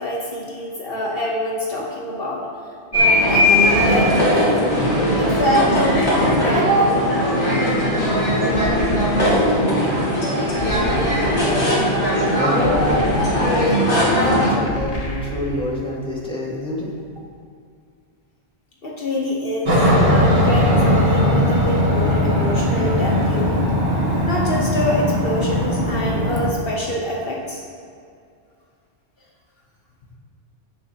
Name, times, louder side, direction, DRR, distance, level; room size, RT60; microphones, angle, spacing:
voice 1, 0.0-2.6 2.9-4.7 5.1-7.2 18.8-19.7 20.0-23.6 24.2-27.6, left 1 dB, 60° left, -2 dB, 1.3 m, -25 dB
sound 1, 2.9-14.6, equal, 90° left, 2.7 m, -18 dB
sound 2, 8.5-9.6 10.6-11.6 12.6-13.7 14.7-15.7, equal, 40° left, 0.9 m, -30 dB
voice 2, 11.3-11.8 12.3-16.9, left 1 dB, 5° left, -6 dB, 1.9 m, -26 dB
Aircraft, 19.7-26.5, equal, 45° right, 1.5 m, -18 dB
16.5 x 6.7 x 2.9 m, 2.3 s
omnidirectional pair, 1.1 m